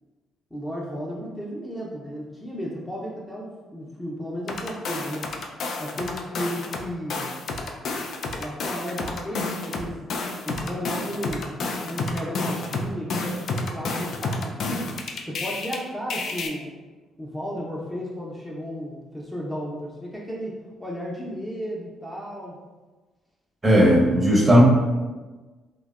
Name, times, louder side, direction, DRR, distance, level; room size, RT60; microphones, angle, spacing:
voice 1, 0.5-5.3 5.8-7.3 8.3-10.0 10.4-14.9 15.2-16.7 17.2-22.6, equal, 5° left, -4 dB, 0.6 m, -34 dB
sound 1, 4.5-6.8 7.1-15.8 16.1-16.5, left 3 dB, 60° left, 0.3 m, -30 dB
voice 2, 23.6-24.6, equal, 25° right, -2 dB, 0.8 m, -16 dB
3.2 x 2.1 x 2.3 m, 1.2 s
hypercardioid pair, 45°, 0 cm